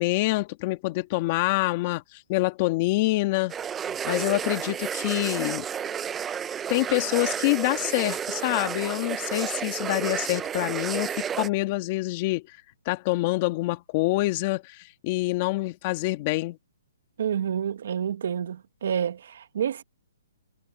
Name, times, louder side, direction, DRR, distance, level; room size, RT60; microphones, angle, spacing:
voice 1, 0.0-3.5 3.9-5.6 6.7-12.4 12.9-16.6, left 20 dB, 30° left, 2.0 m, -26 dB
sound 1, 3.5-11.5, right 8 dB, 10° right, 0.6 m, -31 dB
voice 2, 17.2-19.8, right 8 dB, 60° right, 1.2 m, -28 dB
hypercardioid pair, 160°, 0 cm